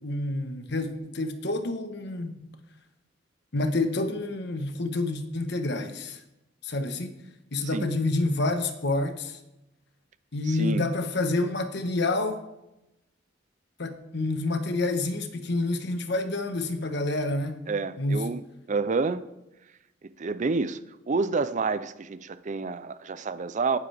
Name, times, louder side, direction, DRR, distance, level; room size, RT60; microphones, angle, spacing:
voice 1, 0.0-2.5 3.5-6.2 6.6-7.2 7.5-9.4 10.3-12.4 13.8-17.7 18.0-18.2, left 2 dB, 60° left, 8 dB, 1.2 m, -28 dB
voice 2, 10.5-10.8 17.7-19.2 20.2-23.8, right 4 dB, 40° right, 14 dB, 0.5 m, -29 dB
18.5 x 9.8 x 3.5 m, 0.92 s
head